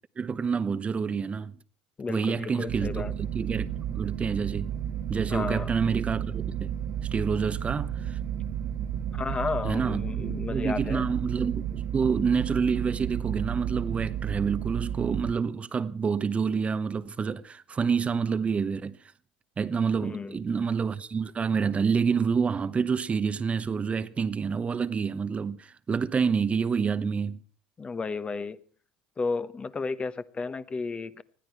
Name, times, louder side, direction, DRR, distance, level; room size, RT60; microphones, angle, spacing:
voice 1, 0.2-1.5 2.1-3.0 3.3-4.7 5.1-6.7 7.1-8.2 9.6-19.0 19.6-27.4, right 6 dB, 25° right, 0.9 m, -28 dB
voice 2, 2.0-3.1 5.3-5.7 9.1-11.1 20.0-20.4 27.8-28.6 29.2-31.2, left 4 dB, 25° left, 1.1 m, -33 dB
sound 1, 2.7-15.3, right 9 dB, 55° right, 1.5 m, -32 dB
20.5 x 14.0 x 4.6 m
hypercardioid pair, 85°, 5 cm